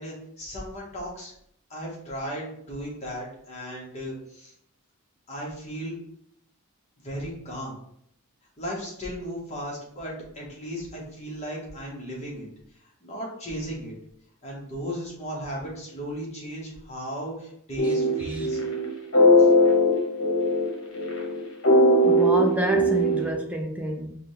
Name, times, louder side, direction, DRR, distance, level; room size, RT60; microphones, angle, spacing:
voice 1, 0.0-1.3 1.7-4.5 5.3-5.9 7.0-7.7 8.6-12.5 13.0-13.9 14.4-18.6 19.4-19.5, equal, 30° left, -3 dB, 1.3 m, -36 dB
sound 1, 17.8-23.3, left 1 dB, 60° left, 1.2 m, -20 dB
voice 2, 22.0-24.2, left 1 dB, 5° right, 1 dB, 0.5 m, -28 dB
4.9 x 2.4 x 3.2 m, 0.70 s
head